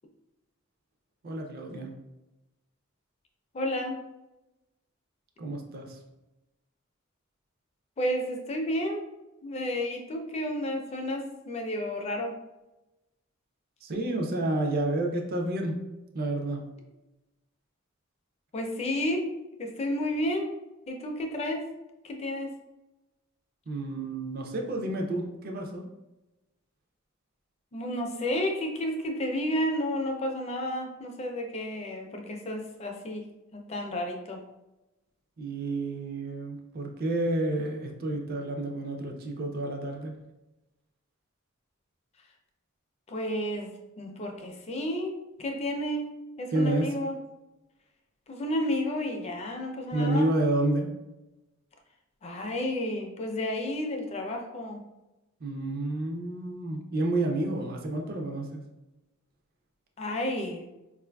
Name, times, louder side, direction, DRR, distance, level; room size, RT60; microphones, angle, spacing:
voice 1, 1.2-1.9 5.4-6.0 13.8-15.8 16.1-16.6 23.7-25.9 35.4-40.1 46.5-46.9 49.9-51.0 55.4-58.6, right 2 dB, 45° right, 2 dB, 0.4 m, -30 dB
voice 2, 3.5-4.0 8.0-9.1 9.4-12.4 18.5-19.3 19.6-20.5 20.9-21.6 22.0-22.5 27.7-33.3 33.5-34.4 43.1-43.7 44.0-47.2 48.3-50.3 52.2-54.8 60.0-60.6, left 1 dB, 30° left, 3 dB, 0.4 m, -31 dB
4.4 x 2.4 x 2.2 m, 0.99 s
head